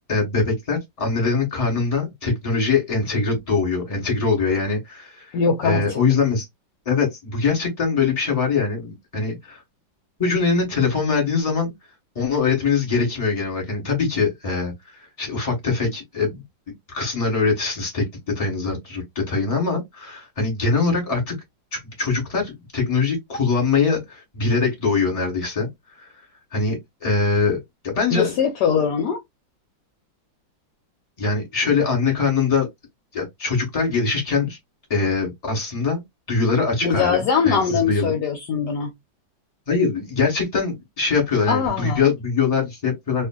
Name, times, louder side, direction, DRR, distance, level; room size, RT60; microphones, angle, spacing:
voice 1, 0.1-5.2 5.6-6.4 6.8-9.6 10.2-11.7 12.1-16.4 16.9-18.0 18.3-21.3 21.7-25.7 26.0-26.1 26.5-27.6 27.8-28.3 31.2-32.7 33.1-34.6 34.9-36.0 36.3-38.1 39.7-43.3, left 4 dB, 20° left, 1.4 m, -22 dB
voice 2, 5.3-6.0 28.1-29.2 36.8-38.9 41.5-42.0, left 6 dB, 70° left, 1.1 m, -22 dB
3.0 x 2.5 x 2.3 m
omnidirectional pair, 2.1 m